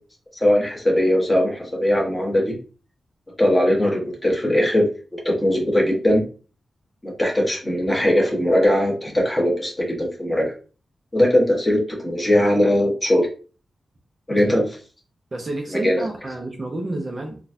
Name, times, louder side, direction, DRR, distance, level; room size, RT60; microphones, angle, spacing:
voice 1, 0.4-2.6 3.4-4.9 5.1-6.2 7.0-10.5 11.1-13.3 14.3-14.7 15.8-16.1, left 1 dB, 15° left, -1 dB, 1.1 m, -20 dB
voice 2, 15.3-17.4, right 2 dB, 30° right, 2 dB, 0.5 m, -30 dB
4.0 x 2.2 x 2.6 m, 0.37 s
wide cardioid pair, 130°, 0 cm